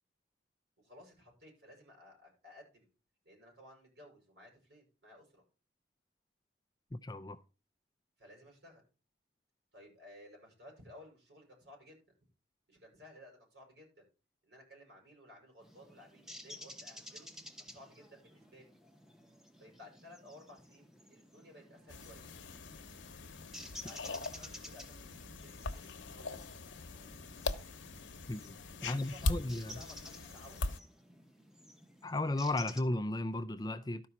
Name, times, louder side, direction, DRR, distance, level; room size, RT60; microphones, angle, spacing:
voice 1, 0.8-2.9 3.2-5.4 8.2-8.8 9.7-12.0 12.7-14.1 14.4-17.3 17.6-18.7 19.6-22.3 23.8-24.8 25.3-26.5 28.8-30.7, left 1 dB, 60° right, 6.6 m, -57 dB
voice 2, 6.9-7.4 28.3-28.6 28.8-29.8 32.0-34.1, left 2 dB, 20° left, 0.4 m, -35 dB
sound 1, 15.6-32.8, left 1 dB, ahead, 1.0 m, -53 dB
sound 2, 21.9-30.8, left 2 dB, 85° left, 0.9 m, -41 dB
12.5 x 5.3 x 5.8 m
head